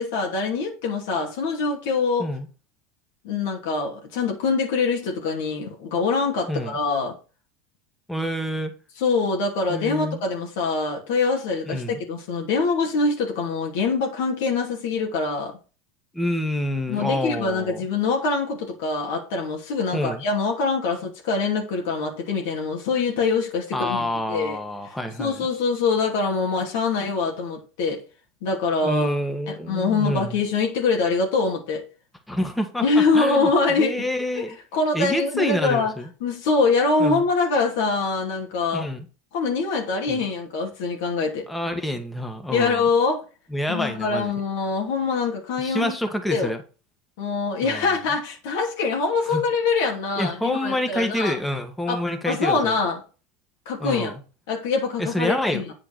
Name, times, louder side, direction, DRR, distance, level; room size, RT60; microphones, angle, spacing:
voice 1, 0.0-2.3 3.2-7.1 9.0-15.5 16.9-24.6 25.2-28.0 28.4-29.2 29.5-31.9 32.8-34.0 34.4-35.9 36.2-38.9 39.3-41.5 42.5-43.2 43.7-45.9 46.3-46.5 47.2-51.4 51.9-53.0 53.7-54.1 54.5-55.7, left 4 dB, 75° left, 0 dB, 2.7 m, -24 dB
voice 2, 6.5-6.8 8.1-8.7 9.7-10.2 11.6-12.0 16.1-17.8 19.9-20.2 23.7-25.5 28.8-30.4 32.3-34.6 34.9-36.1 37.0-37.2 38.7-39.0 40.1-40.2 41.5-42.9 43.5-44.3 45.6-46.6 47.6-47.9 49.3-49.4 50.2-52.8 53.8-54.1 55.0-55.6, left 1 dB, 5° left, 6 dB, 1.7 m, -27 dB
8.7 x 4.6 x 6.1 m, 0.34 s
supercardioid pair, 120°, 0 cm